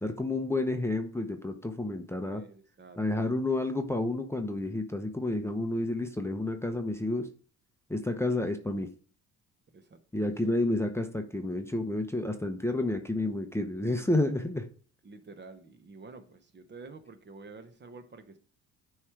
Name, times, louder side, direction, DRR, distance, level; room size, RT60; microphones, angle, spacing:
voice 1, 0.0-2.4 3.0-7.3 7.9-8.9 10.1-14.7, left 2 dB, 10° left, 0.7 m, -30 dB
voice 2, 2.3-3.0 9.7-10.0 14.0-14.4 15.0-18.4, right 3 dB, 35° right, 1.0 m, -49 dB
9.6 x 3.2 x 4.6 m
cardioid pair, 90°, 33 cm